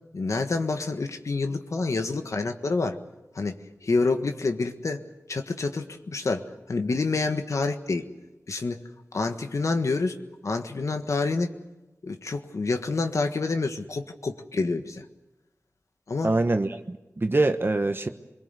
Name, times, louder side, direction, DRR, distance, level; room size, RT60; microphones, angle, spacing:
voice 1, 0.1-3.0 3.3-3.6 3.8-5.0 5.3-8.0 8.5-8.8 9.1-10.2 10.4-11.5 12.0-15.0 16.1-16.3, left 3 dB, 85° left, 6 dB, 1.6 m, -27 dB
voice 2, 16.2-18.1, right 2 dB, 45° right, 7 dB, 1.2 m, -24 dB
23.5 x 22.5 x 8.2 m, 1.0 s
wide cardioid pair, 55°, 5 cm